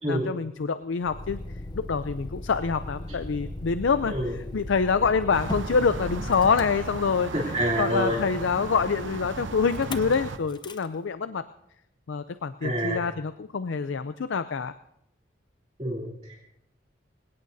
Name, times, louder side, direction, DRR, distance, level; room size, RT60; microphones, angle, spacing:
voice 1, 0.1-1.4 1.7-11.4 12.1-14.7, left 5 dB, 85° left, 12 dB, 0.5 m, -26 dB
Motor vehicle (road), 1.0-7.5 9.7-10.1 10.5-10.9, left 1 dB, 25° left, 0.6 m, -37 dB
sound 1, 5.3-10.4, right 3 dB, 85° right, 0.8 m, -36 dB
voice 2, 7.3-8.2 12.6-13.0 15.8-16.4, right 1 dB, 35° right, -4 dB, 2.9 m, -27 dB
26.0 x 17.5 x 2.7 m, 0.79 s
head